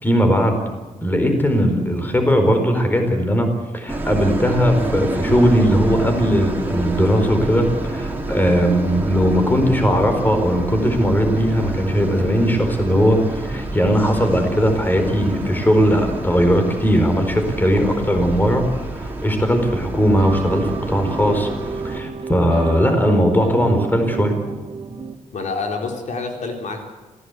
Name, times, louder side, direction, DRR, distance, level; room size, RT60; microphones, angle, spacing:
voice 1, 0.0-0.6 1.0-3.5 3.7-21.5 21.8-24.3, equal, 15° left, 5 dB, 4.3 m, -18 dB
sound 1, 3.9-22.0, right 2 dB, 15° right, 4.2 m, -28 dB
sound 2, 19.6-25.2, right 5 dB, 45° right, 1.8 m, -30 dB
voice 2, 25.3-26.9, left 4 dB, 65° left, 3 dB, 3.8 m, -27 dB
27.0 x 16.5 x 8.2 m, 1.2 s
wide cardioid pair, 125°, 13 cm